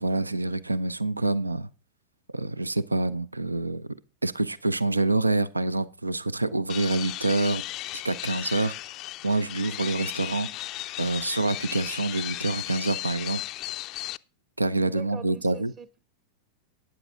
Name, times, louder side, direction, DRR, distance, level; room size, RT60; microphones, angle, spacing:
voice 1, 0.0-1.7 2.3-3.9 4.2-7.7 8.0-8.7 9.2-10.5 11.0-13.4 14.6-15.7, right 2 dB, 80° right, 0.5 m, -26 dB
sound 1, 6.7-14.2, left 17 dB, 40° left, 0.4 m, -35 dB
voice 2, 14.8-16.0, right 6 dB, 30° right, 0.9 m, -43 dB
12.5 x 9.5 x 3.7 m
figure-of-eight pair, 90°, 0 cm